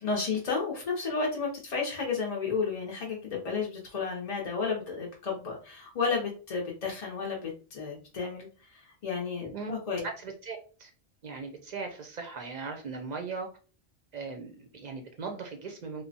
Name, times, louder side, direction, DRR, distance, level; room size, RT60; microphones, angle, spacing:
voice 1, 0.0-10.0, left 5 dB, 45° left, -2 dB, 0.5 m, -32 dB
voice 2, 10.0-10.9 11.2-13.5 14.1-16.0, right 4 dB, 55° right, 4 dB, 0.5 m, -38 dB
3.0 x 2.0 x 2.6 m, 0.37 s
omnidirectional pair, 1.1 m